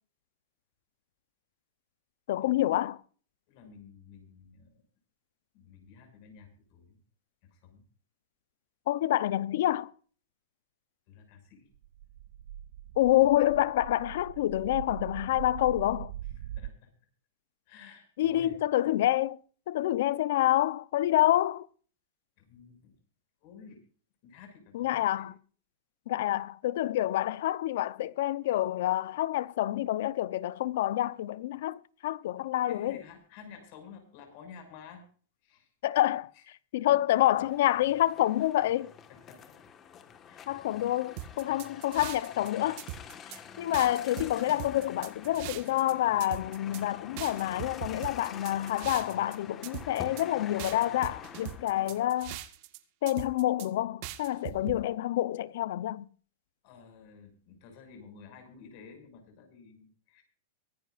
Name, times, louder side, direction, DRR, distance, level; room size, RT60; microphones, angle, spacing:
voice 1, 2.3-3.0 8.9-9.9 13.0-16.1 18.2-19.4 19.7-21.7 24.7-25.3 26.1-33.0 35.8-36.3 36.7-38.9 40.5-42.8 43.6-52.4 53.0-56.1, left 14 dB, 65° left, 0.8 m, -27 dB
voice 2, 3.5-4.8 5.5-7.0 7.4-7.8 11.1-11.7 16.2-16.9 17.7-18.6 21.2-21.3 22.4-23.0 23.4-23.8 24.2-25.3 32.7-35.0 35.4-35.7 36.3-36.4 36.9-37.2 39.1-39.6 40.2-40.7 51.7-52.0 56.6-60.2, left 6 dB, 50° left, 6.3 m, -52 dB
sound 1, 11.8-16.7, right 11 dB, 70° right, 0.5 m, -42 dB
sound 2, 37.2-52.1, left 7 dB, 25° left, 1.6 m, -47 dB
sound 3, 41.2-42.5 42.8-43.4 43.7-45.9 46.2-46.8 47.2-49.3 49.6-50.2 50.6-52.8 53.1-53.7 54.0-54.8, right 15 dB, 50° right, 1.7 m, -41 dB
24.0 x 11.0 x 2.6 m
supercardioid pair, 150°, 0 cm